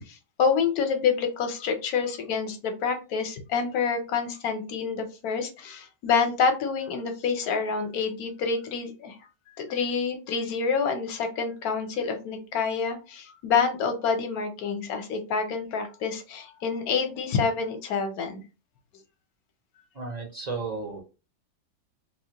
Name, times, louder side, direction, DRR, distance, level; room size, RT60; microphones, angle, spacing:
voice 1, 0.0-9.2 9.6-18.4, left 5 dB, 70° left, 6 dB, 1.2 m, -27 dB
voice 2, 20.0-21.0, right 4 dB, 45° right, 1 dB, 0.5 m, -33 dB
3.8 x 2.1 x 2.8 m, 0.31 s
omnidirectional pair, 1.7 m